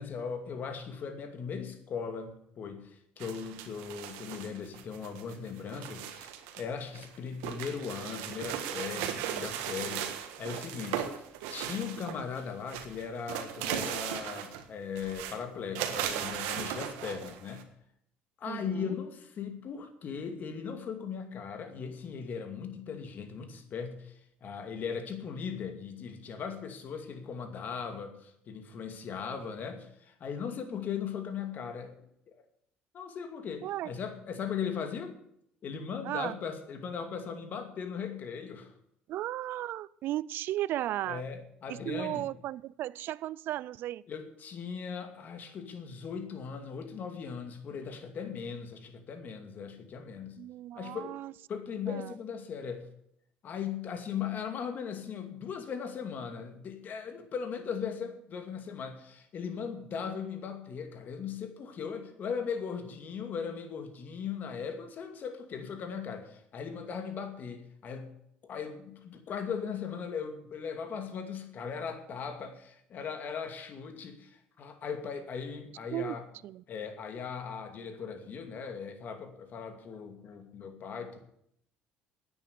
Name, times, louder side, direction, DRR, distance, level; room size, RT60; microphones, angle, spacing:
voice 1, 0.0-11.1 11.5-17.7 18.4-32.4 32.9-35.2 35.6-38.7 41.0-42.2 44.1-50.4 50.8-51.2 51.5-52.9 53.4-68.1 68.4-76.3 76.7-81.2, left 6 dB, 50° left, 7 dB, 2.4 m, -38 dB
sound 1, 3.2-6.6 6.9-12.4 12.7-14.7 15.0-15.4 15.8-17.6, right 10 dB, 85° right, 1.5 m, -37 dB
voice 2, 18.5-19.0 33.6-33.9 36.0-36.4 39.1-41.3 41.7-44.0 50.4-51.3 51.9-52.1 75.9-76.2 76.4-76.6, right 14 dB, 65° right, 22 dB, 0.4 m, -35 dB
10.0 x 8.8 x 10.0 m, 0.73 s
supercardioid pair, 85°, 4 cm